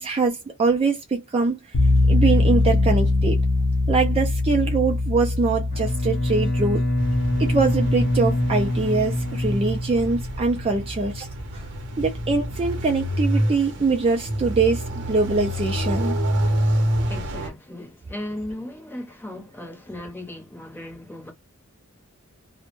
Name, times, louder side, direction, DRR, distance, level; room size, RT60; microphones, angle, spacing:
voice 1, 0.0-1.6 2.1-3.4 3.9-6.8 7.4-11.3 11.5-11.7 12.0-16.2 16.9-17.1, right 4 dB, 25° right, 0.3 m, -23 dB
sound 1, 1.7-10.6, left 2 dB, 90° left, 0.6 m, -23 dB
Bowed string instrument, 5.7-10.4, left 1 dB, 55° left, 1.0 m, -25 dB
sound 2, 7.0-17.5, equal, 55° right, 0.7 m, -27 dB
voice 2, 17.1-21.3, left 1 dB, 10° left, 0.7 m, -36 dB
2.1 x 2.0 x 2.9 m
head